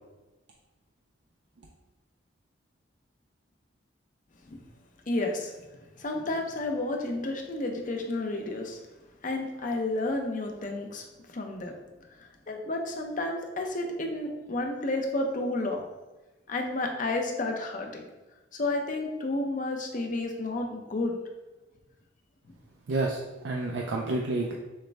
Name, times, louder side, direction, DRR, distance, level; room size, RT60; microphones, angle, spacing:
voice 1, 5.1-5.5 6.0-8.8 9.2-11.0 11.3-11.8 12.5-15.8 16.5-18.0 18.6-21.2, left 2 dB, 45° left, 3 dB, 0.6 m, -31 dB
voice 2, 22.9-24.5, right 2 dB, 70° right, 0 dB, 0.4 m, -29 dB
6.5 x 2.2 x 3.3 m, 1.1 s
head